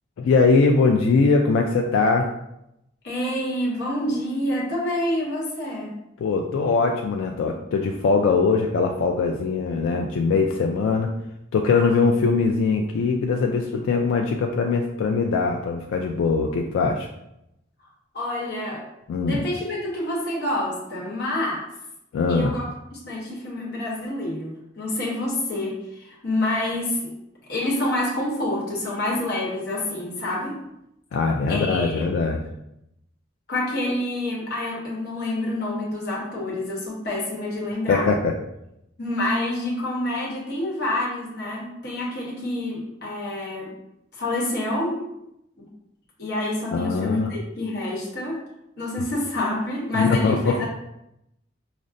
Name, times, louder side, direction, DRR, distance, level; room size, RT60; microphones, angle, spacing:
voice 1, 0.2-2.3 6.2-11.1 11.5-17.1 19.1-19.4 22.1-22.5 31.1-32.4 37.9-38.3 46.7-47.3 49.9-50.7, left 4 dB, 85° left, 2 dB, 0.3 m, -21 dB
voice 2, 3.0-5.9 11.7-11.9 18.1-18.9 19.2-21.7 22.3-22.7 22.9-27.1 27.5-30.6 31.5-32.1 33.5-38.1 39.0-43.7 44.1-45.0 45.6-45.7 46.2-48.4 48.8-50.7, left 1 dB, 55° left, -4 dB, 1.0 m, -27 dB
5.0 x 2.0 x 2.5 m, 0.83 s
head